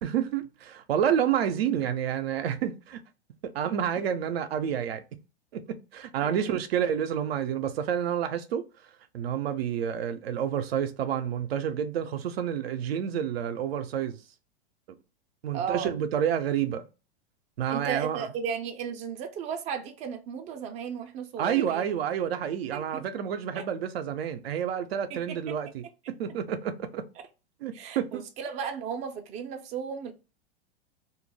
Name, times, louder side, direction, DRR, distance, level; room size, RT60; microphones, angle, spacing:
voice 1, 0.0-3.0 3.4-5.0 5.5-8.6 9.1-14.2 15.4-16.8 17.6-18.3 21.4-25.8 26.2-27.0 27.6-28.2, right 9 dB, 75° right, 0.5 m, -29 dB
voice 2, 6.2-6.5 15.5-15.9 17.7-21.9 22.7-23.1 23.5-23.7 25.1-25.5 27.7-30.1, right 7 dB, 25° right, 0.4 m, -35 dB
2.2 x 2.0 x 3.2 m
hypercardioid pair, 105°, 30 cm